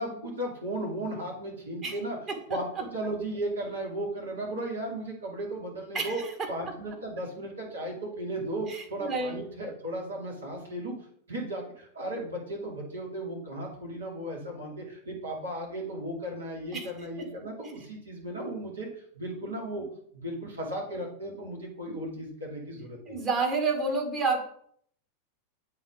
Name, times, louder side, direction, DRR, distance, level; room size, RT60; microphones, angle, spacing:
voice 1, 0.0-2.2 2.5-6.2 6.5-11.0 11.3-18.9 19.1-19.9 20.1-23.2, right 1 dB, 70° right, -1 dB, 2.5 m, -35 dB
voice 2, 8.7-9.4 16.7-16.8 23.1-24.4, right 3 dB, 25° right, 2 dB, 1.6 m, -28 dB
7.9 x 3.7 x 4.9 m, 0.63 s
figure-of-eight pair, 90°, 0 cm